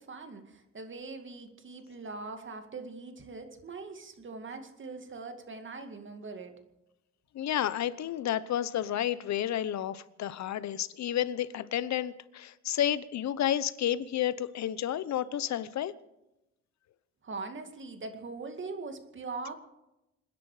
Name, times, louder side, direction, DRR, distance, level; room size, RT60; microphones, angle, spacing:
voice 1, 0.0-6.6 17.2-19.5, right 3 dB, 40° right, 2.2 m, -41 dB
voice 2, 7.3-15.9, left 11 dB, 65° left, 0.9 m, -31 dB
27.0 x 10.5 x 5.0 m
cardioid pair, 90°, 30 cm